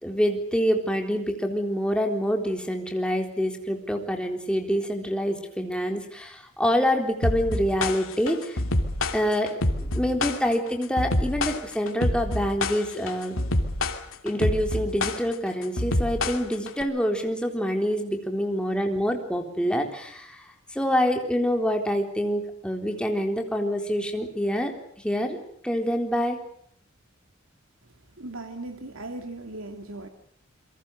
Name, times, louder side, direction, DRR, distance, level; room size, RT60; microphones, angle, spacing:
voice 1, 0.0-8.6 9.1-13.4 14.2-24.7 25.0-25.4 25.6-26.4, equal, 5° left, 3 dB, 3.9 m, -26 dB
sound 1, 7.2-16.8, left 1 dB, 80° left, 2.7 m, -27 dB
voice 2, 28.2-30.1, right 2 dB, 80° right, 5 dB, 2.4 m, -38 dB
29.0 x 23.5 x 6.6 m, 0.64 s
head